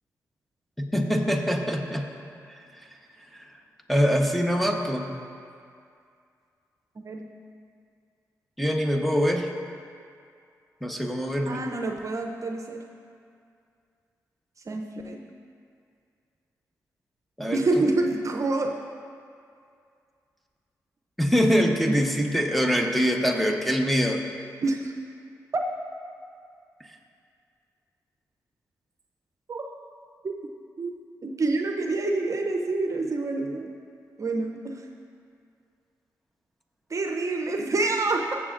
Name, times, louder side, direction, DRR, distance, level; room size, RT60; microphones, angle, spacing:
voice 1, 0.8-2.1 3.9-5.2 8.6-9.5 10.8-11.6 17.4-17.8 21.2-24.2, equal, ahead, 2 dB, 1.0 m, -24 dB
voice 2, 11.5-12.8 14.7-15.2 17.5-18.7 21.7-22.1 24.6-24.8 25.5-25.6 29.5-29.6 30.2-30.3 30.8-30.9 31.2-33.7 34.2-34.8 36.9-38.4, right 2 dB, 50° right, 3 dB, 0.7 m, -27 dB
15.0 x 7.3 x 2.5 m, 2.4 s
supercardioid pair, 50°, 7 cm